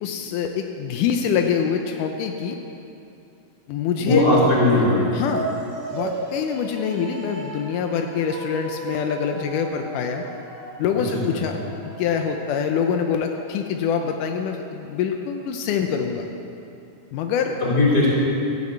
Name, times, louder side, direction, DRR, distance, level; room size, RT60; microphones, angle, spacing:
voice 1, 0.0-2.6 3.7-4.2 4.7-4.9 5.1-5.5 5.9-10.2 10.8-11.6 12.0-16.3 17.1-17.6, left 7 dB, 85° left, 4 dB, 1.8 m, -25 dB
voice 2, 4.0-5.1 11.3-11.5 17.6-18.1, left 2 dB, 25° left, -6 dB, 4.1 m, -18 dB
sound 1, 4.8-13.3, right 3 dB, 45° right, 3.1 m, -36 dB
14.5 x 8.0 x 8.0 m, 2.8 s
omnidirectional pair, 4.5 m